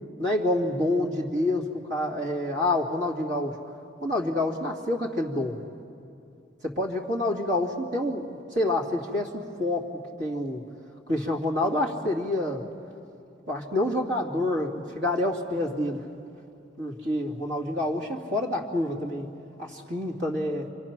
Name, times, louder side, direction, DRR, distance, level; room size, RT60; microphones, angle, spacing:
voice 1, 0.2-1.6 1.9-3.5 4.0-5.6 6.6-9.9 10.2-10.6 11.1-12.6 13.5-16.0 16.8-19.3 19.6-20.7, left 1 dB, 80° right, -2 dB, 2.6 m, -27 dB
28.5 x 25.5 x 6.1 m, 2.6 s
head